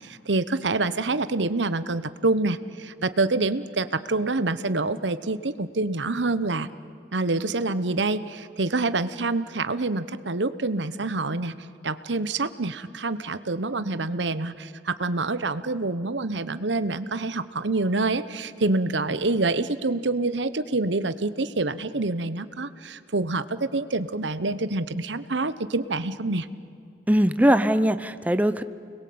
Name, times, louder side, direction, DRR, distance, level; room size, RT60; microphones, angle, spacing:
voice 1, 0.0-6.7 7.1-11.5 11.8-26.5, right 3 dB, 90° right, 14 dB, 1.1 m, -26 dB
voice 2, 27.1-28.6, equal, 10° right, 11 dB, 0.8 m, -20 dB
29.5 x 21.5 x 8.7 m, 2.5 s
head